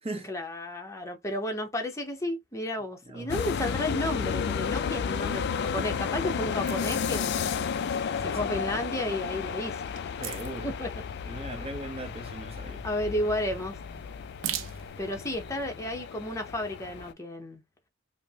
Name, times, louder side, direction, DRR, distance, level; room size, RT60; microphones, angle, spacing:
voice 1, 0.3-7.4 8.2-9.8 10.6-10.9 12.8-13.7 15.0-17.6, left 1 dB, 15° left, 0.7 m, -32 dB
voice 2, 3.0-3.4 6.2-6.4 10.2-10.7 11.3-12.8, right 2 dB, 30° right, 0.8 m, -39 dB
sound 1, 3.3-17.1, left 6 dB, 55° left, 0.3 m, -33 dB
sound 2, 5.1-15.6, right 10 dB, 75° right, 0.4 m, -44 dB
5.0 x 2.1 x 2.7 m
head